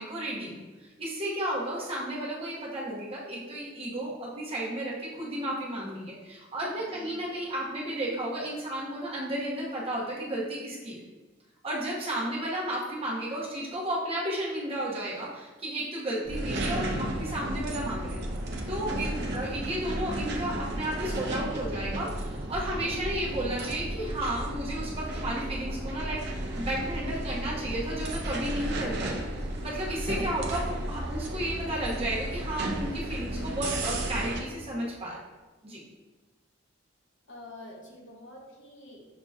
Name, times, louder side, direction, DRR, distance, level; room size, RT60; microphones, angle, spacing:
voice 1, 0.0-11.0 11.6-18.2 18.7-29.1 29.6-35.2 35.6-35.8, right 1 dB, 30° right, -5 dB, 0.9 m, -33 dB
voice 2, 6.8-7.1 12.2-12.4 19.1-19.5 37.3-39.1, left 1 dB, 70° left, -1 dB, 0.9 m, -47 dB
sound 1, 16.2-34.4, right 1 dB, 55° right, 0.5 m, -33 dB
6.5 x 2.8 x 2.3 m, 1.2 s
head